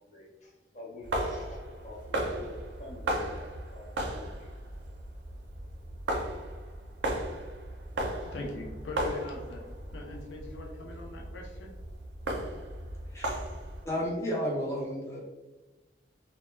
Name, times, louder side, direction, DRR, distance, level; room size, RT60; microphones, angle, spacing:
voice 1, 0.0-4.6, left 1 dB, 40° left, -4 dB, 0.8 m, -47 dB
sound 1, 1.0-13.9, right 1 dB, 70° right, 0.4 m, -36 dB
voice 2, 8.2-9.6 9.9-11.7, left 2 dB, 90° left, -1 dB, 0.5 m, -41 dB
voice 3, 13.8-15.2, equal, 15° left, -5 dB, 0.5 m, -32 dB
2.2 x 2.1 x 3.0 m, 1.1 s
head